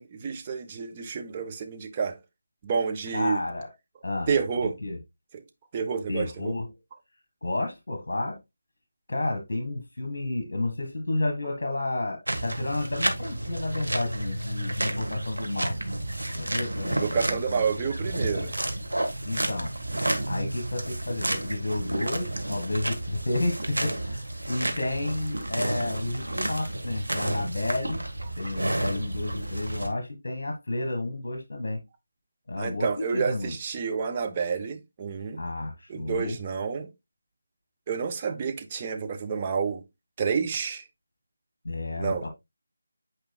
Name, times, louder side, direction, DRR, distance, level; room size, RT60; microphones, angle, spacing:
voice 1, 0.0-2.2 2.6-3.4 4.3-4.8 5.3-5.4 5.7-6.6 16.9-18.5 32.6-35.4 35.9-36.9 37.9-39.8 40.2-40.8 42.0-42.3, right 6 dB, 25° right, 0.9 m, -29 dB
voice 2, 3.1-3.7 4.0-4.4 4.8-5.0 6.1-6.8 7.4-8.4 9.1-15.8 16.3-17.9 19.2-19.7 20.3-28.0 28.4-31.8 32.5-33.5 35.4-36.4 41.6-42.3, left 2 dB, 55° left, 1.7 m, -31 dB
sound 1, 12.3-29.9, right 1 dB, 80° right, 1.5 m, -31 dB
8.8 x 4.9 x 2.3 m
figure-of-eight pair, 160°, 0 cm